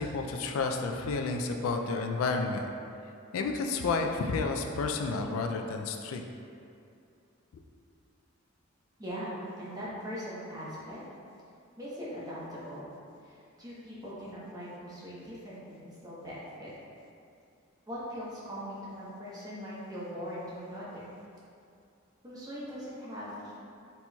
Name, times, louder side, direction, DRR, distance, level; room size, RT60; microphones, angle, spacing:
voice 1, 0.0-2.7 3.3-6.2, left 4 dB, 85° left, 4 dB, 0.3 m, -31 dB
voice 2, 9.0-11.0 11.8-12.8 13.2-16.7 17.9-21.0 22.2-23.6, equal, 20° right, -8 dB, 0.9 m, -41 dB
4.3 x 4.1 x 2.2 m, 2.5 s
head